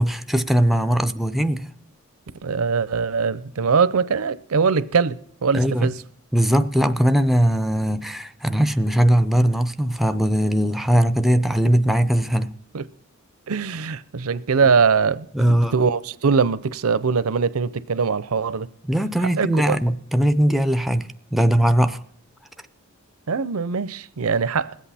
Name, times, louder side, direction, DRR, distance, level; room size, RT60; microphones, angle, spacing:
voice 1, 0.0-1.7 5.5-5.9 6.3-12.5 15.3-15.7 18.9-22.0, equal, ahead, 0.5 m, -20 dB
voice 2, 2.4-6.0 12.7-12.8 13.5-18.7 19.4-19.8 23.3-24.8, right 5 dB, 75° right, 0.6 m, -22 dB
21.0 x 8.2 x 4.2 m
head